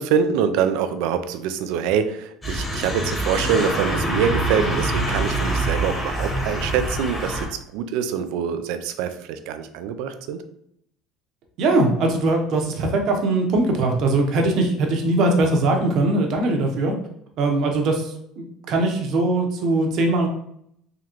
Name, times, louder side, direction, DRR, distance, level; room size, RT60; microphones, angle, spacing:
voice 1, 0.0-10.4, right 7 dB, 80° right, 9 dB, 0.4 m, -24 dB
sound 1, 2.4-7.5, right 1 dB, 15° left, 1.2 m, -25 dB
voice 2, 11.6-17.0 17.4-20.3, right 2 dB, 60° right, 3 dB, 0.9 m, -21 dB
3.8 x 3.1 x 3.0 m, 0.71 s
supercardioid pair, 115°, 0 cm